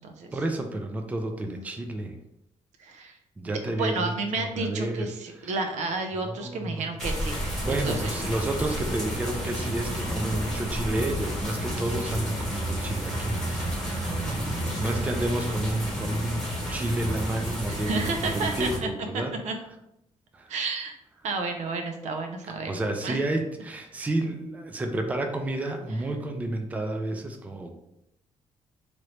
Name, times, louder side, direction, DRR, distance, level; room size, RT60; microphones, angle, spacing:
voice 1, 0.3-2.2 3.4-5.1 5.4-5.6 6.3-6.9 7.6-19.3 20.3-20.5 22.7-27.7, right 1 dB, 10° right, 5 dB, 0.3 m, -31 dB
voice 2, 2.8-3.2 3.4-8.3 14.1-14.8 17.7-18.9 19.4-19.5 20.5-20.9 21.2-22.7 23.0-23.2, right 3 dB, 80° right, 4 dB, 0.5 m, -32 dB
sound 1, 7.0-18.8, equal, 5° left, 1.0 m, -31 dB
3.0 x 2.6 x 3.1 m, 0.84 s
cardioid pair, 130°, 12 cm